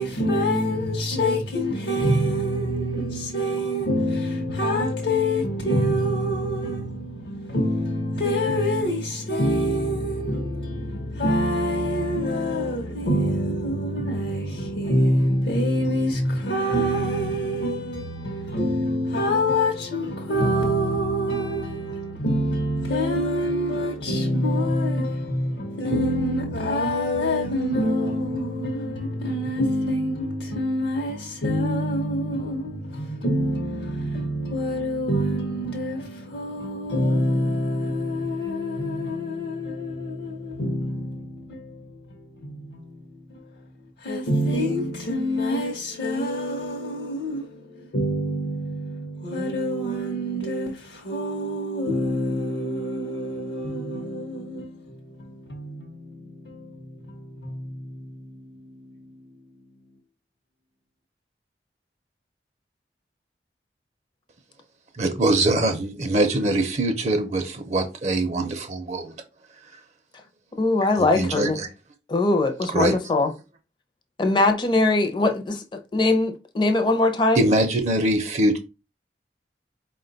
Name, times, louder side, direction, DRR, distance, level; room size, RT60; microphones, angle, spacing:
voice 1, 0.0-59.8, equal, 70° left, 0.7 m, -26 dB
voice 2, 64.9-69.1 71.0-71.7 72.7-73.0 77.4-78.6, right 2 dB, 40° right, 0.5 m, -23 dB
voice 3, 70.6-71.6 72.1-73.3 74.2-77.5, left 2 dB, 25° left, 0.5 m, -21 dB
4.5 x 2.2 x 3.9 m
head